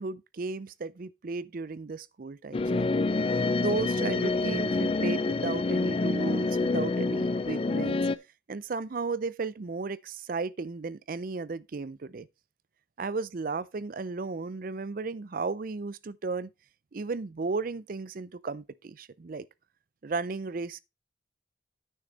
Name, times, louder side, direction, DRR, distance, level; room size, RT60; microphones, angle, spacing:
voice 1, 0.0-2.9 3.6-8.0 8.5-12.3 13.0-16.5 16.9-19.5 20.0-20.8, right 4 dB, 45° right, 0.5 m, -34 dB
sound 1, 2.5-8.2, left 3 dB, 30° left, 0.4 m, -27 dB
9.3 x 6.5 x 4.0 m
head